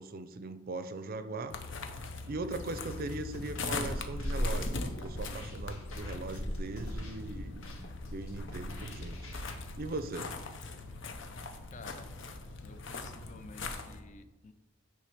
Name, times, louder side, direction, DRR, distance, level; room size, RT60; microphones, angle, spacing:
voice 1, 0.0-1.5 2.3-7.6 8.1-9.2 9.8-10.3, right 2 dB, 45° right, 11 dB, 0.5 m, -39 dB
sound 1, 1.5-14.0, left 2 dB, 65° left, 0.8 m, -39 dB
sound 2, 2.7-9.5, left 1 dB, 90° left, 1.6 m, -47 dB
voice 2, 11.7-12.1 12.6-14.5, left 3 dB, 40° left, 10 dB, 0.5 m, -51 dB
9.8 x 3.3 x 6.0 m, 1.1 s
head